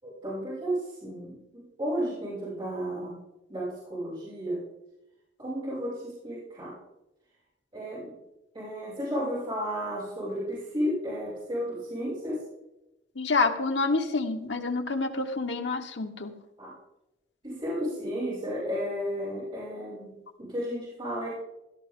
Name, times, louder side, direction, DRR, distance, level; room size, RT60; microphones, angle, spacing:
voice 1, 0.0-3.1 3.5-4.6 5.4-6.7 7.7-8.1 8.5-12.4 16.6-16.7 17.4-21.3, equal, 25° right, -9 dB, 6.0 m, -33 dB
voice 2, 13.1-16.3, left 3 dB, 65° left, 4 dB, 1.2 m, -28 dB
16.5 x 13.0 x 3.7 m, 0.92 s
head